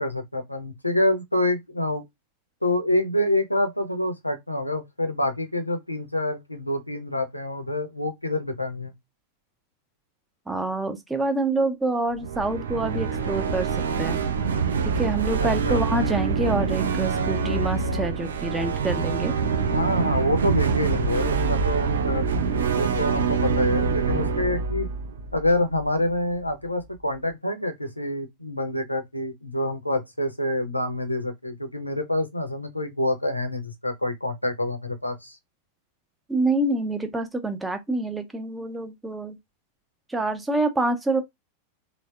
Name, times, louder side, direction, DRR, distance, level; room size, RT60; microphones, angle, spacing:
voice 1, 0.0-2.0 2.6-8.9 15.4-15.8 19.6-22.3 22.7-24.9 25.3-35.4, left 1 dB, 85° left, 0.6 m, -27 dB
voice 2, 10.5-14.2 14.8-19.3 36.3-39.4 40.1-41.2, right 2 dB, 10° right, 0.6 m, -27 dB
sound 1, 12.1-26.1, right 5 dB, 65° right, 0.4 m, -25 dB
3.2 x 2.1 x 2.3 m
figure-of-eight pair, 90°, 0 cm